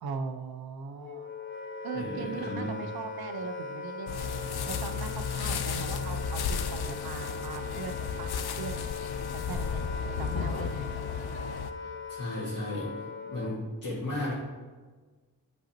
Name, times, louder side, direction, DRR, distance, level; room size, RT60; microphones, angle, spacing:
voice 1, 0.0-1.3 1.8-4.3 4.7-8.9 9.4-9.8 10.2-10.9, right 5 dB, 75° right, 8 dB, 0.6 m, -39 dB
Wind instrument woodwind instrument, 1.0-13.7, left 3 dB, 35° left, 0.5 m, -40 dB
voice 2, 1.9-2.7 11.8-12.9 13.2-14.3, left 1 dB, 60° left, -9 dB, 1.8 m, -35 dB
sound 1, 4.1-11.7, left 6 dB, 85° left, 0.5 m, -34 dB
7.7 x 5.5 x 2.9 m, 1.4 s
wide cardioid pair, 80°, 37 cm